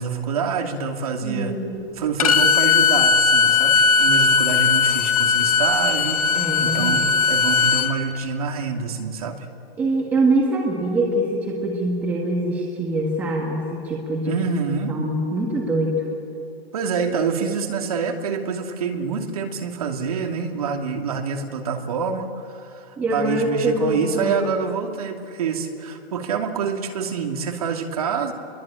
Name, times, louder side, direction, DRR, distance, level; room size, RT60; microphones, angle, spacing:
voice 1, 0.0-1.5 1.9-9.5 14.2-15.0 16.7-28.3, right 6 dB, 35° right, 3 dB, 2.6 m, -26 dB
voice 2, 1.2-1.8 6.3-7.0 9.8-14.3 14.9-16.0 23.0-24.6, right 1 dB, 5° right, -2 dB, 1.5 m, -24 dB
Bowed string instrument, 2.2-7.9, left 5 dB, 35° left, 1.6 m, -18 dB
28.0 x 22.5 x 8.8 m, 2.6 s
hypercardioid pair, 180°, 31 cm